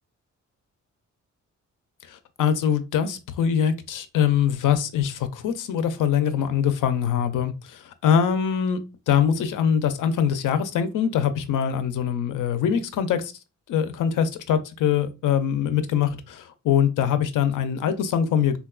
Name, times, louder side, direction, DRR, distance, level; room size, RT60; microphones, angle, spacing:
voice 1, 2.1-8.8 9.1-13.3 13.7-18.6, left 8 dB, 85° left, 0.5 m, -23 dB
3.9 x 2.3 x 2.2 m
wide cardioid pair, 135°, 31 cm